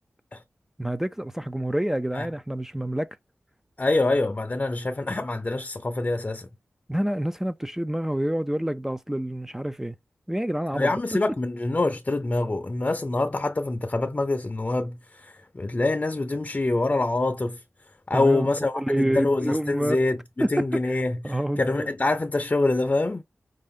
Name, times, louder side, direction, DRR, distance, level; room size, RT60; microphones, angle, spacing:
voice 1, 0.8-3.2 6.9-10.0 10.3-10.9 18.1-18.5 18.7-20.0 20.4-21.0 21.2-21.9, right 1 dB, 10° right, 0.4 m, -27 dB
voice 2, 3.8-6.5 10.7-17.6 18.1-23.2, left 2 dB, 35° left, 0.6 m, -25 dB
5.3 x 2.5 x 3.6 m
wide cardioid pair, 65°, 5 cm